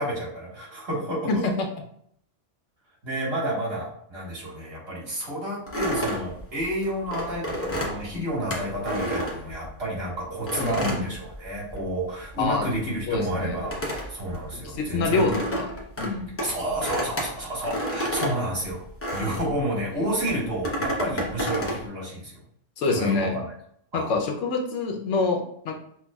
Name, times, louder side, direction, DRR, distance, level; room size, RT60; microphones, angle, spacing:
voice 1, 0.0-1.3 3.0-15.3 16.4-18.8 19.1-22.4 22.9-23.3 23.9-24.1, right 1 dB, 60° right, -5 dB, 1.7 m, -30 dB
sound 1, 5.7-10.0 10.5-12.0 12.2-19.6 20.2-21.8, equal, 15° left, 0.5 m, -31 dB
voice 2, 10.6-11.0 12.4-12.7 13.1-13.6 14.6-15.7 16.0-16.3 20.0-20.2 22.8-23.4 23.9-25.7, left 3 dB, 80° left, 2 dB, 1.0 m, -26 dB
5.6 x 2.3 x 2.2 m, 0.69 s
omnidirectional pair, 1.2 m